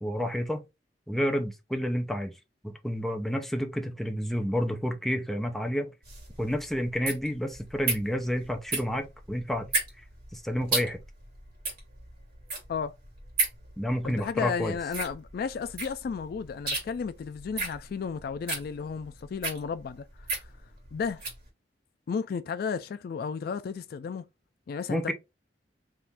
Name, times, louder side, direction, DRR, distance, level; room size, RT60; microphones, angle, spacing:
voice 1, 0.0-0.6 1.1-2.3 2.6-5.9 6.4-9.7 10.3-11.0 13.8-14.7 24.9-25.1, equal, ahead, 0.6 m, -30 dB
sound 1, 6.0-21.4, right 3 dB, 55° right, 2.1 m, -34 dB
voice 2, 14.0-20.1 20.4-20.5 20.9-21.2 22.1-24.2 24.7-25.1, left 6 dB, 60° left, 0.3 m, -33 dB
3.6 x 2.5 x 4.2 m
head